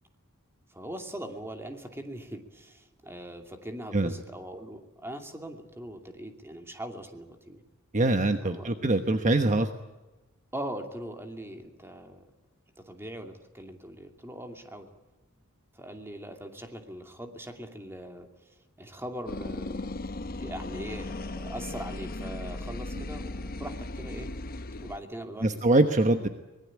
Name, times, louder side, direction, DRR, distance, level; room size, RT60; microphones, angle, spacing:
voice 1, 0.7-7.6 8.4-8.9 10.5-12.3 12.8-14.9 15.7-19.9 20.4-24.3 24.8-25.7, right 1 dB, 10° right, 5 dB, 2.6 m, -41 dB
voice 2, 7.9-9.7 25.4-26.3, right 2 dB, 35° right, 7 dB, 1.2 m, -23 dB
sound 1, 19.3-25.0, left 2 dB, 45° left, 0.9 m, -37 dB
24.0 x 20.5 x 8.6 m, 1.1 s
head